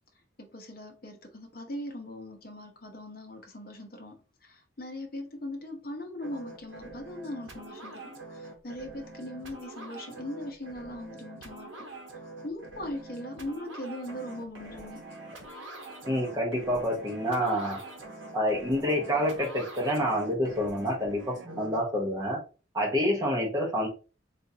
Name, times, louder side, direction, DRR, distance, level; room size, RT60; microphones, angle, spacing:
voice 1, 0.4-11.8 12.4-15.1, left 1 dB, 50° left, 0.8 m, -40 dB
sound 1, 6.2-21.8, right 2 dB, 70° right, 0.9 m, -45 dB
voice 2, 16.1-17.8 18.3-22.4 22.7-23.9, equal, 20° right, 1.0 m, -28 dB
3.8 x 2.5 x 2.7 m
head